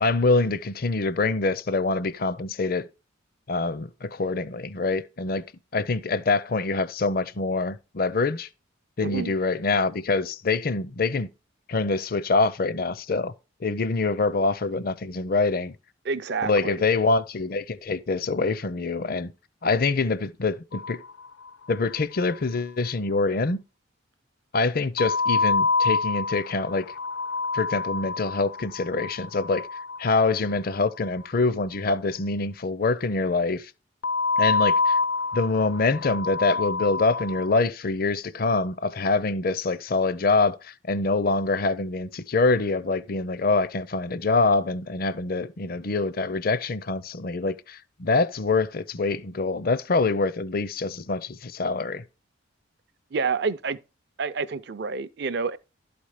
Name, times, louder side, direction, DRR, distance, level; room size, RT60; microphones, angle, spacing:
voice 1, 0.0-2.9 3.5-5.4 5.7-8.5 9.0-11.3 11.7-13.3 13.6-15.7 16.4-19.3 19.6-21.0 21.7-23.6 24.5-26.9 27.5-29.7 30.0-33.7 34.4-35.0 35.3-52.0, left 3 dB, 45° left, 0.5 m, -25 dB
voice 2, 9.0-9.3 16.0-16.8 53.1-53.8 54.2-55.6, right 4 dB, 55° right, 0.5 m, -28 dB
sound 1, 20.7-21.7 22.0-22.1 22.3-22.4 25.0-31.1 34.0-37.6, left 4 dB, 85° left, 0.8 m, -27 dB
12.0 x 4.3 x 4.9 m
head